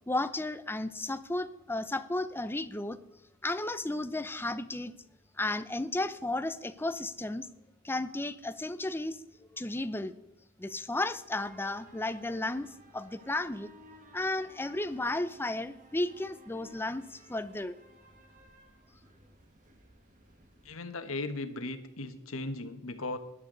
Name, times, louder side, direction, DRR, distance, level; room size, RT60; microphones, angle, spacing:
voice 1, 0.1-3.0 3.4-4.9 5.4-7.5 7.8-9.2 9.5-10.1 10.6-13.7 14.1-17.8, left 2 dB, 10° left, 12 dB, 0.6 m, -33 dB
sound 1, 11.3-20.7, right 1 dB, 40° right, 1.6 m, -57 dB
voice 2, 20.6-23.2, left 2 dB, 80° left, 8 dB, 1.3 m, -37 dB
14.5 x 11.0 x 3.9 m, 0.88 s
head